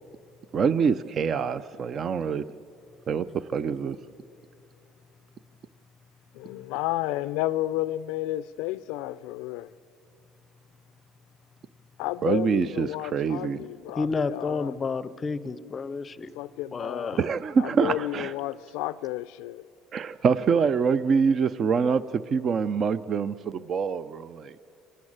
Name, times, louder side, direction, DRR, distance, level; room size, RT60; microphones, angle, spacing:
voice 1, 0.5-2.4 3.1-4.0 12.2-13.6 17.2-18.3 19.9-24.5, right 6 dB, 35° right, 0.5 m, -25 dB
voice 2, 6.3-9.7 12.0-14.8 16.4-17.3 17.6-19.7, left 16 dB, 80° left, 0.5 m, -32 dB
voice 3, 14.0-16.3 16.7-17.2, left 4 dB, 25° left, 0.6 m, -30 dB
25.5 x 12.5 x 8.8 m
cardioid pair, 135°, 0 cm